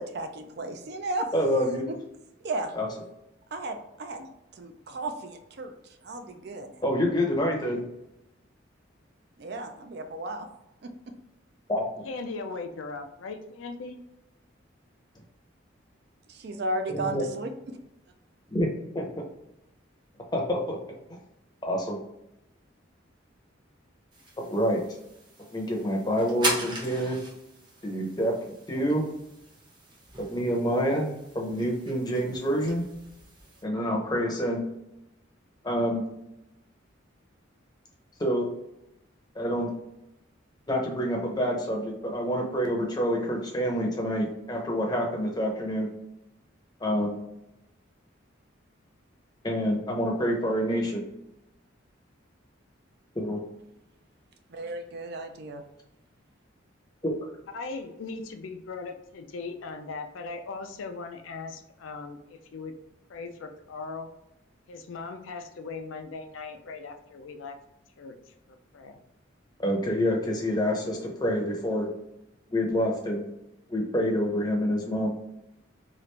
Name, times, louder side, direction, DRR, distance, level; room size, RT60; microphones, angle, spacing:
voice 1, 0.0-1.3 1.9-2.0 2.4-2.7 3.5-5.7 6.0-6.7 9.4-10.5 16.3-17.5 54.5-55.6, right 2 dB, 55° right, 6 dB, 0.4 m, -34 dB
voice 2, 1.3-1.9 2.7-2.9 6.8-7.8 11.7-11.8 16.9-17.2 18.5-18.7 18.9-19.0 20.3-20.8 21.6-22.0 24.4-24.8 25.5-27.2 27.8-28.3 28.7-29.0 30.3-31.1 31.3-32.9 33.6-34.6 35.6-36.0 38.2-38.5 39.3-39.7 40.7-45.9 46.8-47.1 49.4-51.0 53.2-53.4 57.0-57.1 69.6-71.9 72.5-73.2 73.7-75.1, equal, 20° left, 0 dB, 0.6 m, -27 dB
voice 3, 12.0-14.0 57.5-62.7 63.1-64.1 64.7-67.6 68.0-68.2 68.5-69.0, left 4 dB, 80° left, 7 dB, 0.4 m, -39 dB
sound 1, 24.1-33.6, right 2 dB, 25° right, 0.7 m, -39 dB
3.1 x 2.4 x 3.2 m, 0.88 s
head